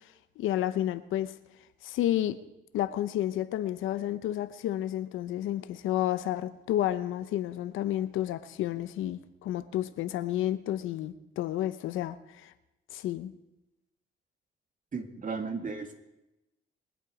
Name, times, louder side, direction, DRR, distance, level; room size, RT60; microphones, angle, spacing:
voice 1, 0.4-1.3 1.8-2.4 2.7-12.5 12.9-13.3, left 12 dB, 85° left, 0.8 m, -31 dB
voice 2, 14.9-15.9, right 4 dB, 40° right, 2.1 m, -35 dB
22.0 x 8.2 x 4.9 m
cardioid pair, 90°, 20 cm